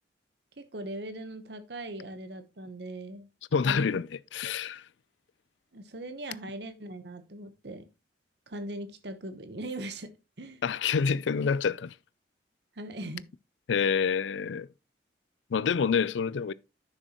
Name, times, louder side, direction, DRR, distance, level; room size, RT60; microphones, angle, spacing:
voice 1, 0.6-3.3 3.6-4.0 5.7-7.8 8.5-10.1 10.4-10.6 12.7-13.3, right 1 dB, 65° right, 1.1 m, -40 dB
voice 2, 3.5-4.8 10.6-12.0 13.7-14.7 15.5-16.5, left 6 dB, 80° left, 0.4 m, -27 dB
9.8 x 6.7 x 3.0 m
head